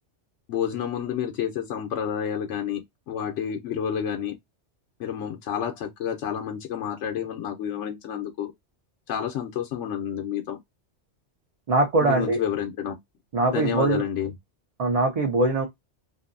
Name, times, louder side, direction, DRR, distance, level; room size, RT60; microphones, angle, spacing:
voice 1, 0.5-4.4 5.0-8.5 9.1-10.6 12.0-13.0 13.5-14.3, left 8 dB, 85° left, 1.0 m, -29 dB
voice 2, 11.7-12.4 13.3-14.0 14.8-15.7, right 2 dB, 45° right, 0.5 m, -22 dB
2.6 x 2.6 x 2.5 m
omnidirectional pair, 1.2 m